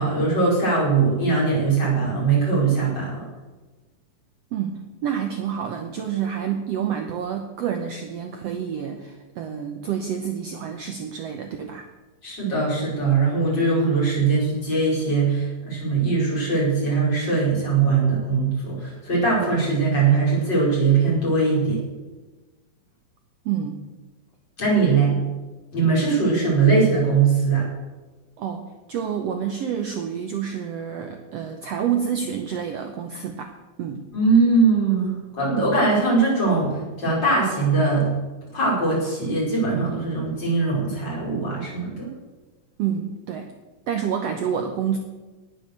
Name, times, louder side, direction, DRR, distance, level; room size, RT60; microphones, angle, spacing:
voice 1, 0.0-3.2 12.2-21.8 24.6-25.2 25.7-27.7 34.1-38.1 38.5-42.1, right 4 dB, 30° left, -5 dB, 5.6 m, -21 dB
voice 2, 4.5-11.9 23.4-23.8 24.8-25.0 28.4-34.1 42.8-43.5 43.9-45.0, right 8 dB, 85° right, 5 dB, 1.4 m, -28 dB
18.5 x 6.6 x 6.5 m, 1.2 s
omnidirectional pair, 4.1 m